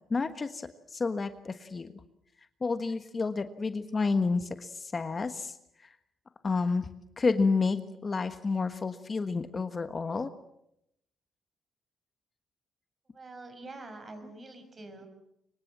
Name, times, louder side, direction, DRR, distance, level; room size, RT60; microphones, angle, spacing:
voice 1, 0.1-1.9 2.6-5.5 6.4-6.9 7.2-10.3, left 4 dB, 35° left, 9 dB, 1.4 m, -30 dB
voice 2, 13.1-15.1, right 2 dB, 35° right, 8 dB, 6.2 m, -45 dB
25.0 x 23.0 x 7.5 m, 0.79 s
cardioid pair, 90°, 0 cm